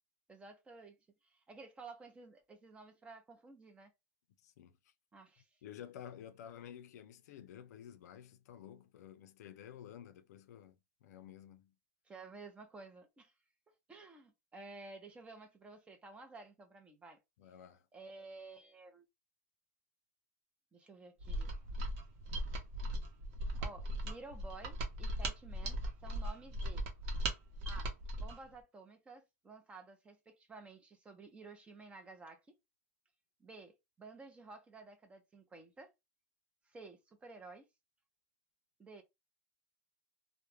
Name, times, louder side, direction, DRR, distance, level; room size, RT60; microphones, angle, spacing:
voice 1, 0.3-1.0 1.2-3.9 5.1-5.5 12.1-13.3 13.9-17.2 17.9-19.0 20.7-21.5 23.6-26.8 27.7-32.4 33.4-35.9 36.7-37.7 38.8-39.0, right 3 dB, 15° right, 0.5 m, -53 dB
voice 2, 4.4-4.9 5.6-11.7 17.4-17.8, left 9 dB, 80° left, 0.4 m, -52 dB
Mechanisms, 21.2-28.4, right 1 dB, 55° right, 0.8 m, -38 dB
2.2 x 2.0 x 3.1 m
supercardioid pair, 150°, 9 cm